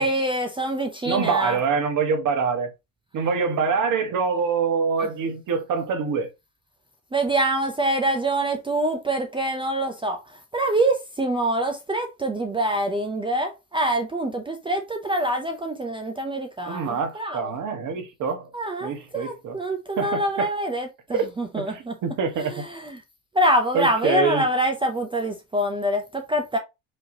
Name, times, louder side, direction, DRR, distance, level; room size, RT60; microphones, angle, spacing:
voice 1, 0.0-1.6 5.0-5.1 7.1-17.5 18.5-22.0 22.4-23.0 23.3-26.6, right 1 dB, 10° right, 0.5 m, -25 dB
voice 2, 1.0-2.7 3.1-6.3 16.6-18.5 18.8-19.5 20.0-20.5 21.1-21.2 21.6-22.7 23.7-24.4, right 5 dB, 45° right, 1.3 m, -25 dB
4.9 x 2.9 x 2.8 m
supercardioid pair, 100°, 42 cm